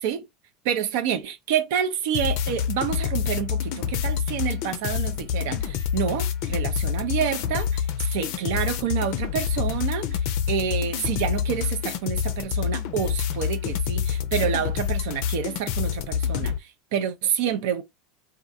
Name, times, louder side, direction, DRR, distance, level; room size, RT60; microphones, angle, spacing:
voice 1, 0.6-17.8, right 8 dB, 70° right, 0.4 m, -28 dB
sound 1, 2.1-16.6, left 8 dB, 65° left, 0.4 m, -27 dB
2.4 x 2.1 x 2.6 m
hypercardioid pair, 90°, 0 cm